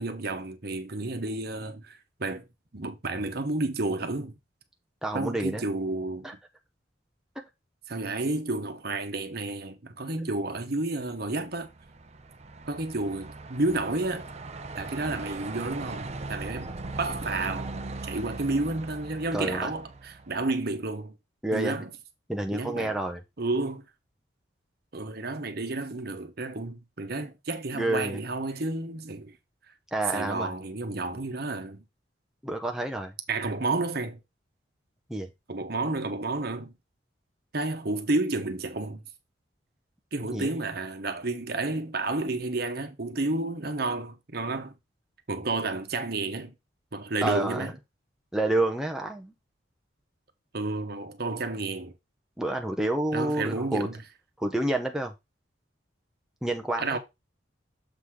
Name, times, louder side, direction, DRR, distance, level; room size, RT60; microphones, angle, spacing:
voice 1, 0.0-2.4 2.7-4.3 5.1-6.3 7.9-11.7 12.7-14.3 14.8-17.7 18.0-21.1 21.5-21.9 22.5-22.9 23.4-23.8 24.9-29.4 30.1-31.8 33.3-34.2 35.5-36.7 37.5-39.0 40.1-44.7 45.3-46.5 46.9-47.7 50.5-51.9 53.1-54.0 56.8-57.0, right 2 dB, 55° right, 1.1 m, -31 dB
voice 2, 5.0-5.6 6.2-6.3 10.1-10.3 19.3-19.7 21.4-21.8 22.3-23.2 27.7-28.2 29.9-30.5 32.4-33.1 35.1-35.3 40.3-40.5 47.2-47.7 48.3-49.3 52.4-53.9 54.4-55.1 56.4-57.0, right 1 dB, 5° right, 0.8 m, -29 dB
Truck, 11.3-20.7, right 3 dB, 35° right, 0.6 m, -39 dB
7.0 x 4.0 x 4.8 m
head